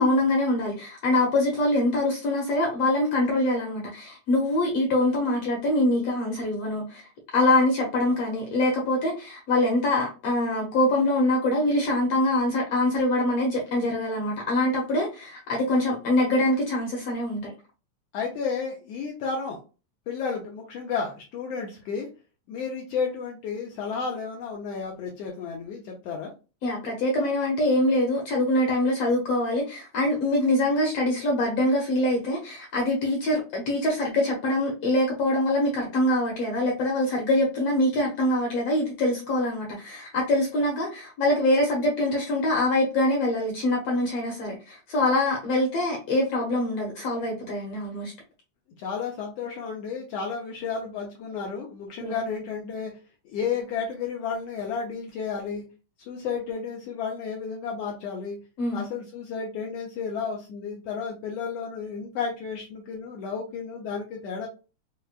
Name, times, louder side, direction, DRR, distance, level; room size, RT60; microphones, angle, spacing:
voice 1, 0.0-7.1 7.3-17.5 26.6-48.1 52.0-52.2 58.6-58.9, left 1 dB, 65° left, 0 dB, 1.6 m, -24 dB
voice 2, 18.1-19.6 20.1-22.1 22.5-26.3 48.8-52.9 53.2-55.6 56.1-58.4 58.7-64.5, left 5 dB, 90° left, 0 dB, 1.3 m, -32 dB
5.9 x 2.2 x 2.4 m, 0.32 s
omnidirectional pair, 3.6 m